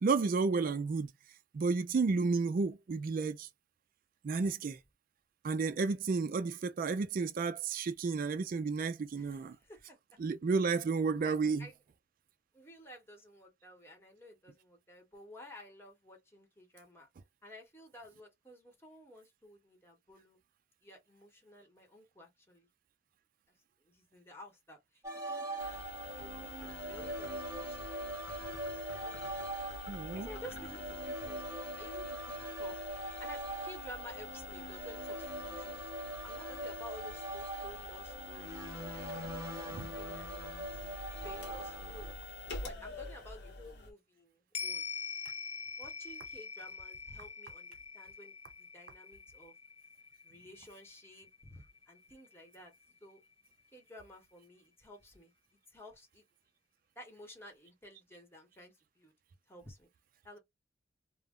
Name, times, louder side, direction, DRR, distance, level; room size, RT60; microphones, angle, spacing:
voice 1, 0.0-1.1 1.5-3.5 4.2-4.8 5.4-9.6 10.2-11.7 29.9-30.4 39.7-39.9, right 4 dB, 50° right, 0.3 m, -32 dB
voice 2, 9.2-10.0 11.2-11.7 12.5-17.1 17.4-20.4 20.8-22.7 23.5-25.8 26.1-29.6 29.9-31.4 31.8-32.8 33.2-35.9 36.2-39.1 39.9-40.9 41.2-42.1 42.6-44.9 45.8-49.5 50.2-52.7 53.0-53.2 53.7-55.3 55.7-56.2 56.9-59.1 59.5-59.9 60.2-60.4, equal, 15° left, 0.9 m, -53 dB
sound 1, 25.0-42.1, right 2 dB, 15° right, 0.8 m, -42 dB
sound 2, 25.6-43.9, left 3 dB, 65° left, 0.8 m, -46 dB
sound 3, 44.5-53.1 53.5-53.6, left 5 dB, 35° left, 0.4 m, -45 dB
2.2 x 2.0 x 3.5 m
head